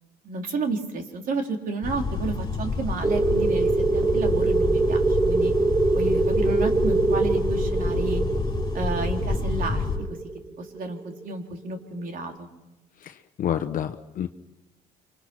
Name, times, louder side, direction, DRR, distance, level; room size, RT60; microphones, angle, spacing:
voice 1, 0.2-5.5 5.9-8.2 8.7-10.2 10.6-12.5, right 3 dB, 55° right, 3 dB, 3.9 m, -31 dB
sound 1, 1.8-10.0, left 3 dB, 25° left, 5.1 m, -28 dB
sound 2, 3.0-11.4, right 3 dB, 15° right, 0.9 m, -24 dB
voice 2, 13.0-14.3, left 9 dB, 55° left, 7 dB, 1.1 m, -29 dB
29.0 x 25.0 x 6.2 m, 1.0 s
cardioid pair, 110°, 17 cm